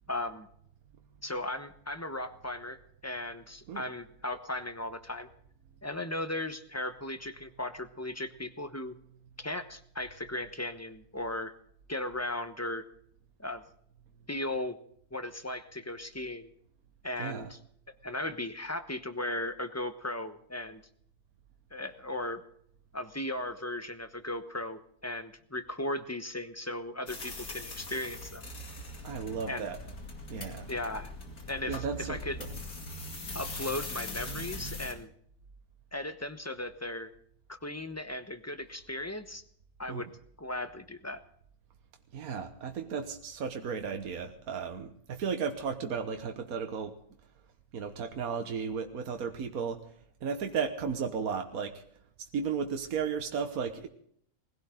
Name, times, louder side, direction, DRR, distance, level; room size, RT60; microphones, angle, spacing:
voice 1, 0.1-0.5 1.2-5.3 5.8-8.9 9.4-11.5 11.9-12.8 13.4-13.6 14.3-14.8 15.1-16.5 17.0-17.6 18.0-20.8 21.7-22.4 22.9-28.4 29.5-29.7 30.7-31.1 31.5-32.4 33.3-35.1 35.9-37.1 37.5-39.4 39.8-40.1 40.4-41.2, left 1 dB, 10° left, 9 dB, 1.0 m, -37 dB
voice 2, 17.2-17.5 29.0-29.8 30.3-30.7 31.7-32.6 39.9-40.1 42.1-46.9 47.7-49.8 50.2-51.8 52.2-53.9, right 6 dB, 75° right, 5 dB, 1.6 m, -34 dB
sound 1, 27.1-34.9, left 1 dB, 75° left, 3.0 m, -41 dB
21.0 x 16.0 x 3.8 m, 0.65 s
omnidirectional pair, 1.5 m